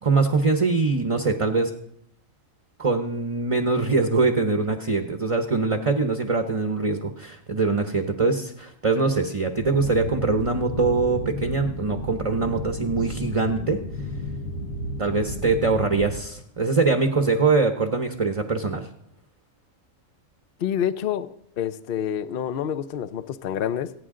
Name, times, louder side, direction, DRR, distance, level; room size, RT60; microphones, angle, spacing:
voice 1, 0.0-1.7 2.8-13.8 15.0-18.9, right 3 dB, 30° right, 7 dB, 0.8 m, -23 dB
sound 1, 9.6-16.2, left 1 dB, 80° left, 2.0 m, -33 dB
voice 2, 20.6-23.9, left 9 dB, 55° left, 14 dB, 0.7 m, -28 dB
26.0 x 9.4 x 3.8 m, 0.75 s
omnidirectional pair, 1.4 m